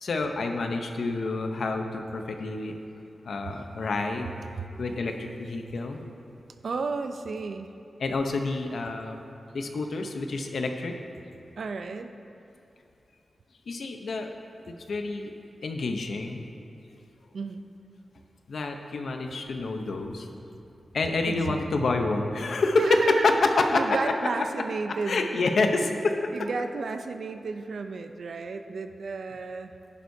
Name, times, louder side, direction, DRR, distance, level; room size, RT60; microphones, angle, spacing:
voice 1, 0.0-2.7 3.2-4.3 4.8-6.0 8.0-9.2 9.5-11.0 13.7-14.3 14.7-15.3 15.6-16.4 18.5-20.3 20.9-23.9 25.1-26.1, left 3 dB, 75° left, 4 dB, 0.8 m, -27 dB
voice 2, 6.6-7.7 11.6-12.1 17.3-17.6 21.3-21.6 22.8-23.3 23.7-25.2 26.3-29.7, right 4 dB, 70° right, 7 dB, 0.6 m, -32 dB
14.0 x 11.0 x 2.8 m, 2.6 s
wide cardioid pair, 105°, 0 cm